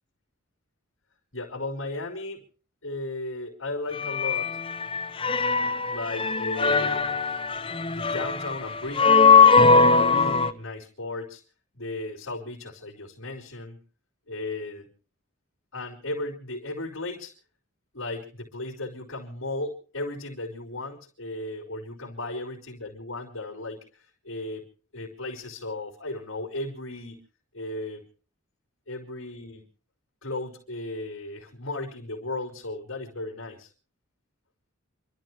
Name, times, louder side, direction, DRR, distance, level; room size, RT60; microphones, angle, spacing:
voice 1, 1.3-2.4 2.8-4.6 5.9-7.1 7.9-9.4 9.7-11.4 11.7-13.8 14.3-14.9 15.7-17.3 17.9-24.6 24.9-27.2 27.5-28.0 28.9-29.6 30.2-33.7, left 2 dB, 70° left, -6 dB, 4.5 m, -35 dB
sound 1, 3.9-10.5, left 4 dB, 25° left, 0.7 m, -20 dB
28.5 x 13.0 x 3.2 m, 0.38 s
head